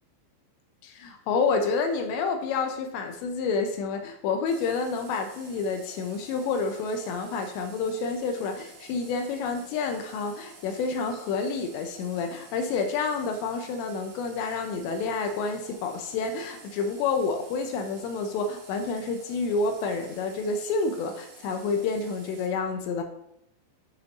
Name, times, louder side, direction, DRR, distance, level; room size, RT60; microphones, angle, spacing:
voice 1, 0.8-23.0, left 4 dB, 80° left, 5 dB, 2.8 m, -29 dB
Water tap faucet, 4.5-22.5, right 4 dB, 55° right, 3.0 m, -50 dB
9.7 x 6.2 x 2.6 m, 0.80 s
omnidirectional pair, 5.4 m